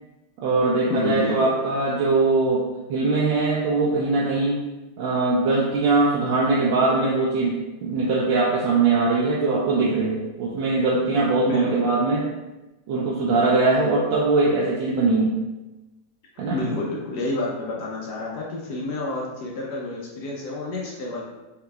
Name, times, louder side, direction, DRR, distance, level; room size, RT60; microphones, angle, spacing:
voice 1, 0.4-4.6 5.0-12.3 12.9-15.4 16.4-16.6, right 3 dB, 75° right, -4 dB, 1.2 m, -21 dB
voice 2, 0.9-1.5 11.5-11.9 16.5-21.2, left 2 dB, 65° left, -3 dB, 1.1 m, -29 dB
4.3 x 3.8 x 2.3 m, 1.0 s
omnidirectional pair, 2.3 m